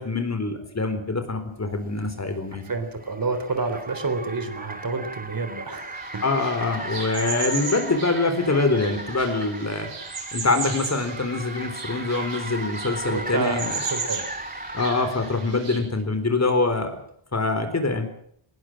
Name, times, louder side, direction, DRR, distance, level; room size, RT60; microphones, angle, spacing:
voice 1, 0.0-2.7 6.2-9.9 10.3-13.8 14.7-16.9 17.3-18.1, left 3 dB, 30° left, 9 dB, 4.1 m, -24 dB
Car, 1.8-15.7, right 2 dB, 15° right, 3.6 m, -37 dB
voice 2, 2.5-6.2 13.1-14.3, right 3 dB, 45° right, 9 dB, 3.8 m, -29 dB
sound 1, 5.9-15.8, right 4 dB, 60° right, 7.6 m, -36 dB
20.0 x 19.5 x 7.7 m, 0.66 s
wide cardioid pair, 120°, 49 cm